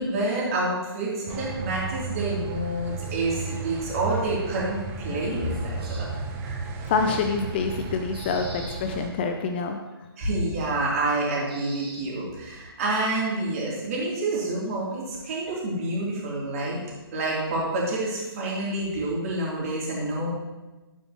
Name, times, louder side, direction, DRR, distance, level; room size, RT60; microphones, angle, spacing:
voice 1, 0.0-6.1 6.4-6.7 10.2-16.8 17.1-20.3, right 2 dB, 35° right, -5 dB, 3.2 m, -28 dB
sound 1, 1.3-9.1, right 4 dB, 15° right, 0.8 m, -34 dB
sound 2, 5.8-6.1 7.8-8.8 9.3-9.4 11.1-12.0, right 2 dB, 70° right, 2.2 m, -43 dB
voice 2, 6.8-9.8, left 4 dB, 25° left, 5 dB, 0.5 m, -26 dB
11.5 x 8.9 x 3.0 m, 1.2 s
figure-of-eight pair, 135°, 13 cm